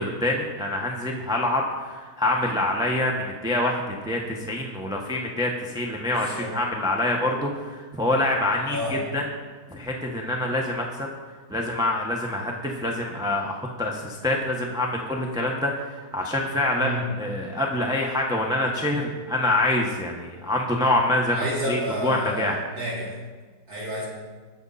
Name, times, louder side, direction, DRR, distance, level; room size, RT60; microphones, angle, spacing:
voice 1, 0.0-9.2 9.7-11.1 11.5-22.6, left 1 dB, 5° right, -1 dB, 0.9 m, -26 dB
voice 2, 6.1-6.5 8.7-9.0 16.8-17.0 21.3-23.1 23.7-24.1, right 1 dB, 40° right, -7 dB, 4.6 m, -30 dB
21.0 x 7.1 x 4.2 m, 1.4 s
omnidirectional pair, 2.4 m